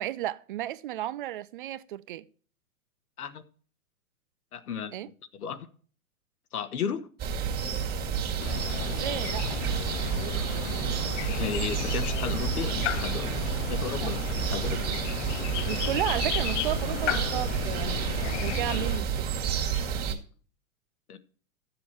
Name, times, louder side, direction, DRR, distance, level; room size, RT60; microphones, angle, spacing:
voice 1, 0.0-2.3 4.9-5.1 8.8-11.1 14.0-14.1 15.6-18.0 18.3-19.3, right 13 dB, 40° right, 0.4 m, -34 dB
voice 2, 4.5-5.7 6.5-7.1 11.2-13.3 13.7-15.1 21.1-21.2, left 7 dB, 85° left, 1.4 m, -34 dB
sound 1, 7.2-20.1, right 7 dB, 20° right, 2.0 m, -30 dB
sound 2, 8.4-19.0, left 14 dB, 55° left, 0.6 m, -35 dB
12.5 x 7.5 x 4.3 m
hypercardioid pair, 140°, 43 cm